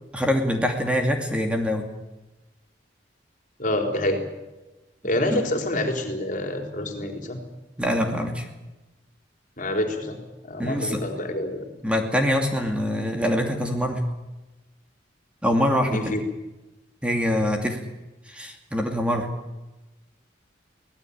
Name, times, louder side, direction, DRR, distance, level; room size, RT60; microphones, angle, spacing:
voice 1, 0.1-1.9 5.3-5.5 7.8-8.5 10.6-11.0 11.8-14.0 15.4-16.1 17.0-17.8 18.3-19.3, equal, 5° right, 3 dB, 2.6 m, -24 dB
voice 2, 3.6-4.2 5.0-7.4 9.6-10.2 10.4-11.7 15.9-16.2, left 1 dB, 45° left, 4 dB, 4.1 m, -27 dB
24.5 x 19.0 x 8.8 m, 1.1 s
head